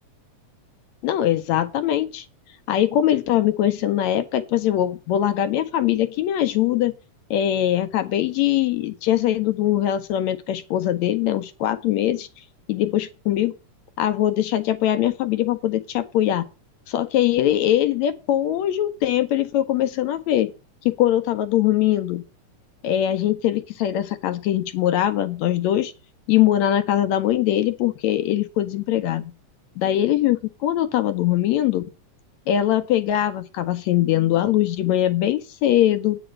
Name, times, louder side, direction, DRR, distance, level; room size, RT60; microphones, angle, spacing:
voice 1, 1.0-2.3 2.7-6.9 7.3-12.3 12.7-13.5 14.0-16.4 16.9-20.5 20.9-22.2 22.8-25.9 26.3-29.3 29.8-31.8 32.5-36.2, left 12 dB, 75° left, 1.9 m, -22 dB
9.1 x 5.0 x 7.5 m
omnidirectional pair, 3.6 m